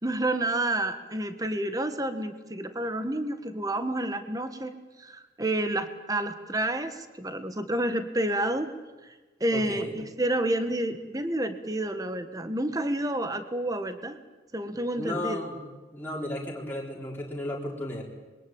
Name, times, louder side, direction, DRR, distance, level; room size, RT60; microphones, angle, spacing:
voice 1, 0.0-4.7 5.0-8.7 9.4-14.2 14.5-15.4, right 1 dB, 20° right, 9 dB, 1.6 m, -29 dB
voice 2, 9.5-10.0 15.0-15.7 15.9-18.0, left 1 dB, 10° left, -2 dB, 4.1 m, -34 dB
25.5 x 22.5 x 9.0 m, 1.2 s
head